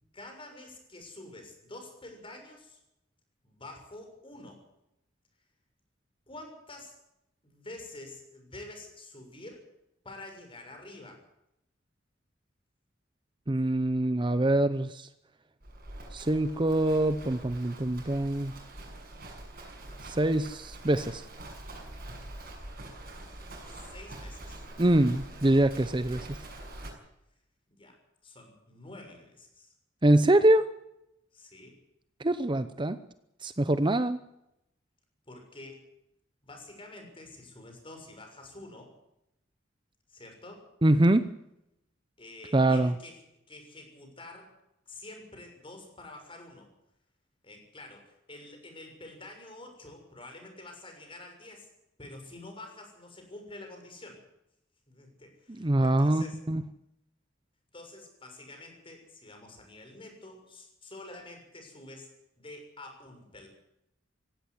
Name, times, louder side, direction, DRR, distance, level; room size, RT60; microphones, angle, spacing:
voice 1, 0.1-2.8 3.4-4.6 6.3-6.9 7.4-9.6 10.0-11.2 23.7-24.6 27.7-28.0 28.2-29.7 31.3-31.8 35.3-35.8 36.4-38.9 40.1-40.6 42.2-43.2 43.5-44.5 44.9-46.7 47.4-51.7 52.0-54.2 54.9-56.4 57.7-62.1 62.4-63.5, left 2 dB, 30° left, 4 dB, 6.7 m, -47 dB
voice 2, 13.5-15.1 16.1-18.5 20.1-21.2 24.8-26.4 30.0-30.7 32.2-33.0 33.4-34.2 40.8-41.2 42.5-42.9 55.5-56.6, right 1 dB, 25° right, 12 dB, 0.8 m, -24 dB
Livestock farm animals working animals, 15.6-26.9, right 1 dB, 50° right, 6.7 m, -45 dB
17.0 x 16.5 x 9.7 m, 0.83 s
head